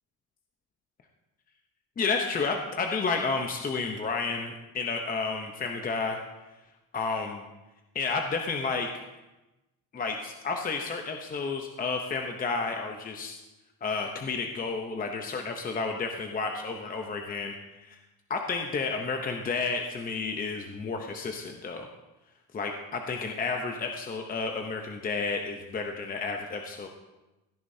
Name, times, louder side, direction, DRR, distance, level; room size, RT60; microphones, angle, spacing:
voice 1, 2.0-6.2 6.9-7.4 7.9-8.9 9.9-13.4 13.8-17.5 17.8-18.0 18.3-21.9 22.5-26.9, left 4 dB, 25° left, 3 dB, 0.7 m, -31 dB
16.5 x 9.9 x 2.7 m, 1.0 s
cardioid pair, 140°, 37 cm